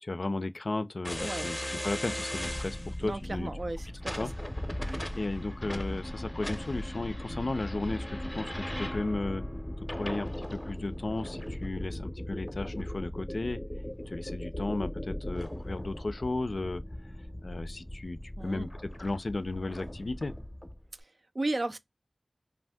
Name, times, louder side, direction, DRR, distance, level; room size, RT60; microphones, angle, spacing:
voice 1, 0.0-3.5 4.2-4.3 5.1-9.4 9.9-13.6 14.1-16.8 17.4-18.7 19.0-20.3, left 2 dB, 70° left, 0.3 m, -34 dB
sound 1, 1.0-20.8, left 1 dB, 15° left, 0.6 m, -38 dB
voice 2, 3.0-4.3 4.8-5.0 18.4-18.7 21.0-21.8, right 2 dB, 65° right, 0.3 m, -35 dB
2.6 x 2.4 x 3.4 m
wide cardioid pair, 45°, 0 cm